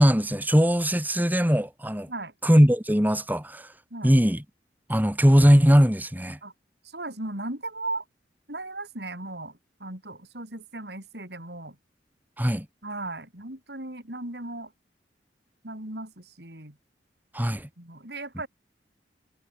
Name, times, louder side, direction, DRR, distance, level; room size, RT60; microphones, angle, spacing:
voice 1, 0.0-2.1 2.4-3.7 4.0-4.4 4.9-6.4 12.4-12.7 17.3-17.7, equal, 10° right, 3.8 m, -20 dB
voice 2, 6.8-8.0 8.5-11.8 12.8-14.7 15.6-16.8 17.8-18.5, right 2 dB, 65° right, 6.5 m, -37 dB
head